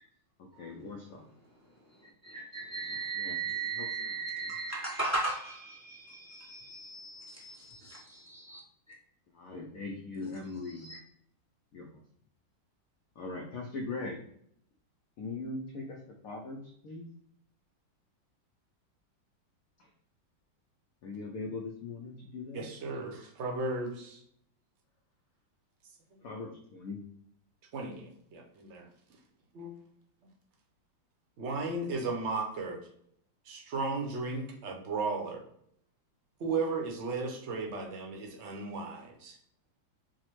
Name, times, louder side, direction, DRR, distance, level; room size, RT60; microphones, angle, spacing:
voice 1, 0.4-1.3 3.1-3.4 3.8-4.1 9.3-10.9 11.7-12.0 13.2-14.2 15.2-17.1 21.0-22.6 26.2-27.0, left 3 dB, 85° left, 0 dB, 0.7 m, -40 dB
voice 2, 1.8-8.6 8.9-9.0 10.2-10.3 10.7-11.0, right 3 dB, 20° left, -5 dB, 0.4 m, -37 dB
voice 3, 22.5-24.2 27.7-28.9 29.5-29.7 31.4-32.8 33.5-35.4 36.4-39.4, right 3 dB, 55° right, 0 dB, 0.8 m, -35 dB
4.8 x 2.1 x 3.0 m, 0.68 s
omnidirectional pair, 2.1 m